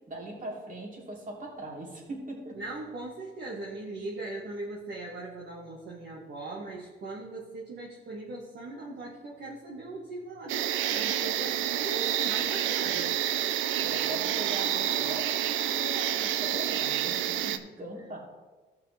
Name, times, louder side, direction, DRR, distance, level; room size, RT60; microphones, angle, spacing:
voice 1, 0.1-2.6 13.8-18.2, right 1 dB, 40° right, -3 dB, 3.1 m, -40 dB
voice 2, 2.5-13.2 17.5-17.6, right 2 dB, 60° right, -4 dB, 1.7 m, -39 dB
sound 1, 10.5-17.6, right 11 dB, 85° right, 0.5 m, -28 dB
14.5 x 5.7 x 3.4 m, 1.3 s
cardioid pair, 90°, 20 cm